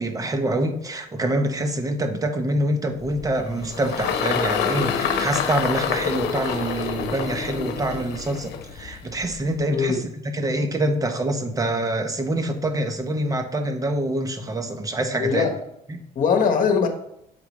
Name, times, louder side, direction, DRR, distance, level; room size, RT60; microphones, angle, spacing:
voice 1, 0.0-15.5 15.9-16.0, right 1 dB, 20° right, 6 dB, 0.9 m, -25 dB
Engine, 3.0-9.6, left 7 dB, 75° left, 0.9 m, -27 dB
voice 2, 9.7-10.0 15.2-15.6 16.1-16.9, left 6 dB, 55° left, 6 dB, 1.2 m, -21 dB
7.6 x 4.7 x 3.1 m, 0.78 s
cardioid pair, 110°, 17 cm